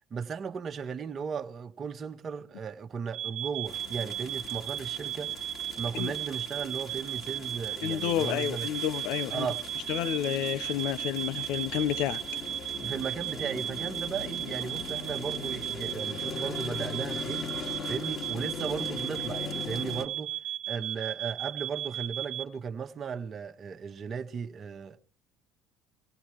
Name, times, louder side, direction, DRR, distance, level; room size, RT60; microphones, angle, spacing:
voice 1, 0.1-5.3 5.8-8.7 9.3-9.6 12.8-17.4 17.9-20.4 20.7-25.0, right 6 dB, 40° right, 1.5 m, -36 dB
sound 1, 3.1-22.4, right 12 dB, 65° right, 0.9 m, -36 dB
sound 2, 3.7-20.1, left 6 dB, 45° left, 2.4 m, -40 dB
voice 2, 7.8-9.5 9.9-12.2, left 11 dB, 65° left, 0.9 m, -30 dB
24.5 x 17.5 x 3.1 m
hypercardioid pair, 60°, 0 cm